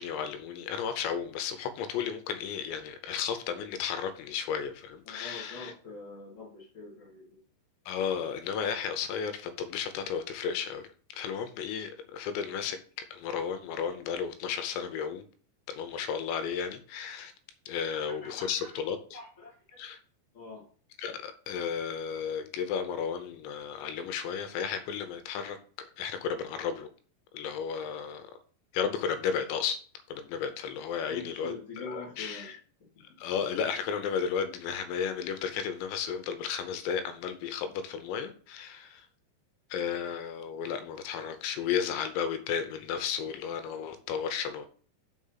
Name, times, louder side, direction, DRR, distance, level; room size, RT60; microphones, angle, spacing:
voice 1, 0.0-5.7 7.9-10.8 11.1-12.8 13.1-15.2 15.7-17.3 17.7-19.0 19.8-20.0 21.0-25.6 26.0-26.9 27.3-28.3 28.7-29.8 30.1-32.6 33.2-39.0 39.7-44.7, left 7 dB, 80° left, 9 dB, 3.0 m, -33 dB
voice 2, 5.0-7.4 17.8-18.8 19.1-19.8 20.3-20.6 31.0-32.5 32.8-32.9, left 3 dB, 50° left, -5 dB, 0.9 m, -44 dB
6.2 x 4.9 x 5.6 m, 0.42 s
omnidirectional pair, 5.2 m